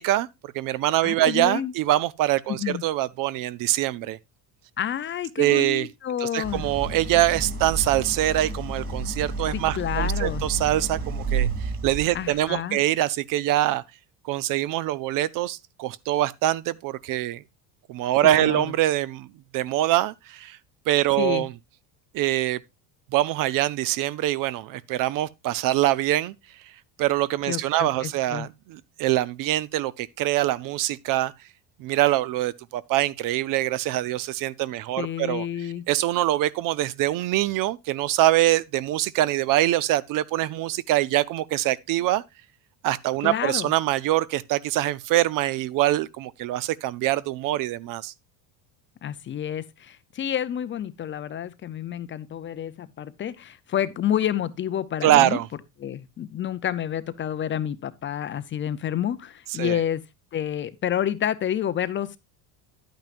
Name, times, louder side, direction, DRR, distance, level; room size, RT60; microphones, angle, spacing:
voice 1, 0.0-4.2 5.4-5.9 6.2-13.8 14.2-17.4 17.9-19.3 19.5-20.6 20.9-21.5 22.1-22.6 23.1-26.3 27.0-31.3 31.8-42.2 42.8-48.1 55.0-55.5 59.6-59.8, right 14 dB, 50° right, 0.5 m, -24 dB
voice 2, 1.0-1.7 2.5-2.8 4.8-6.6 9.5-10.4 12.1-12.8 18.4-18.7 21.2-21.5 27.5-28.5 35.0-35.8 43.2-43.7 49.0-55.4 55.8-60.0 60.3-62.2, left 10 dB, 30° left, 0.5 m, -29 dB
Idling, 6.4-12.5, right 3 dB, 30° right, 2.8 m, -30 dB
10.5 x 9.1 x 2.4 m
cardioid pair, 140°, 43 cm